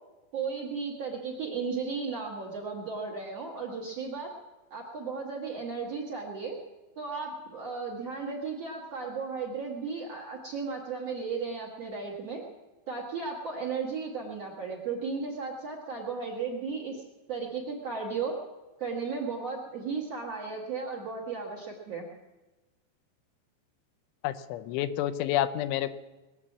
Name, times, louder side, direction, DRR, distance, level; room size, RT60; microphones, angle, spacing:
voice 1, 0.3-4.3 4.7-6.6 7.0-12.4 12.9-17.0 17.3-18.4 18.8-22.1, right 5 dB, 50° right, 0 dB, 2.2 m, -35 dB
voice 2, 24.2-26.0, left 12 dB, 85° left, 11 dB, 3.1 m, -29 dB
21.5 x 8.9 x 7.4 m, 1.1 s
omnidirectional pair, 5.3 m